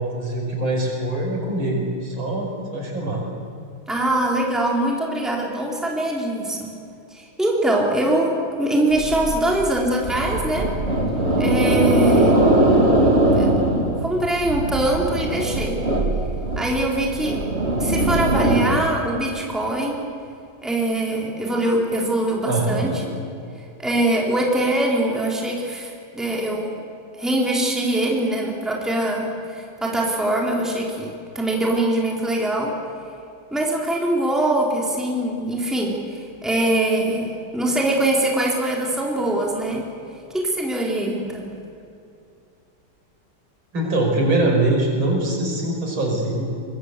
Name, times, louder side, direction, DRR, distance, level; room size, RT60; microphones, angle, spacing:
voice 1, 0.0-3.2 22.5-22.9 43.7-46.4, right 2 dB, 70° right, 0 dB, 6.1 m, -23 dB
voice 2, 3.9-6.7 7.1-10.7 11.4-12.5 13.3-13.5 14.0-15.8 16.6-17.4 17.8-20.0 20.6-23.0 23.8-26.8 27.1-32.7 33.5-39.9 40.3-41.5, right 1 dB, ahead, -2 dB, 3.6 m, -23 dB
sound 1, 8.9-18.7, right 1 dB, 30° right, 2.8 m, -20 dB
24.0 x 22.5 x 8.3 m, 2.6 s
omnidirectional pair, 2.3 m